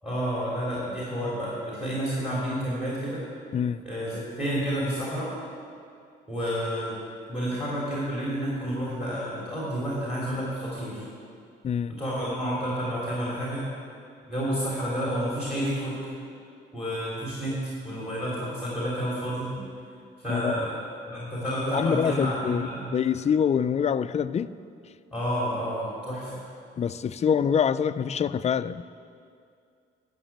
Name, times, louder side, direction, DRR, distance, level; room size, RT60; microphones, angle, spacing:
voice 1, 0.0-3.3 3.8-5.3 6.3-7.0 7.3-11.0 11.9-13.7 14.3-16.0 16.7-19.6 20.2-20.7 21.1-22.9 25.1-26.4, equal, 5° right, -6 dB, 3.5 m, -30 dB
voice 2, 3.5-3.8 11.6-12.0 20.3-20.6 21.7-24.5 26.8-28.8, left 7 dB, 35° left, 14 dB, 0.4 m, -25 dB
11.5 x 6.1 x 8.8 m, 2.4 s
cardioid pair, 90°, 20 cm